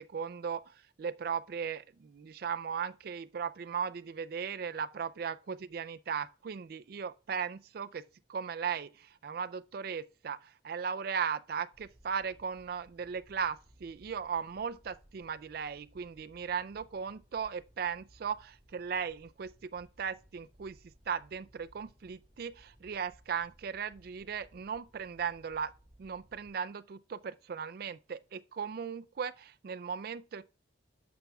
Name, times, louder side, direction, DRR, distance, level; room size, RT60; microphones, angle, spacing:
voice 1, 0.0-20.8 21.1-25.7 26.0-30.4, right 6 dB, 55° right, 0.4 m, -37 dB
sound 1, 11.7-26.5, equal, 25° right, 4.3 m, -62 dB
11.5 x 6.9 x 2.3 m
head